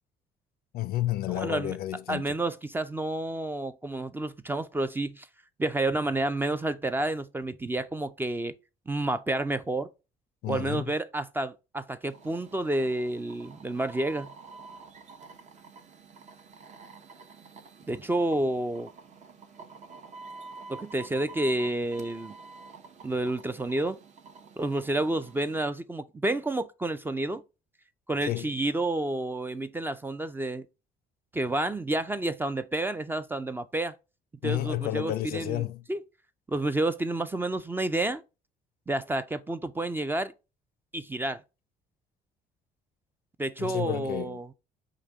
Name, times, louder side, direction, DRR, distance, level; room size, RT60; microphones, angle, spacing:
voice 1, 0.7-2.4 10.4-10.9 28.3-28.5 34.4-35.8 43.6-44.5, left 14 dB, 65° left, 0.4 m, -31 dB
voice 2, 1.3-1.7 2.1-5.3 5.6-8.5 8.9-9.9 10.5-14.3 17.9-18.9 20.7-22.4 23.0-24.0 24.6-27.4 28.1-30.7 31.3-33.9 34.4-36.0 36.5-38.2 38.9-40.3 40.9-41.4 43.4-44.5, right 2 dB, 10° right, 0.3 m, -30 dB
sound 1, 12.0-25.6, right 4 dB, 45° right, 0.8 m, -48 dB
5.0 x 2.8 x 3.4 m
cardioid pair, 110°, 17 cm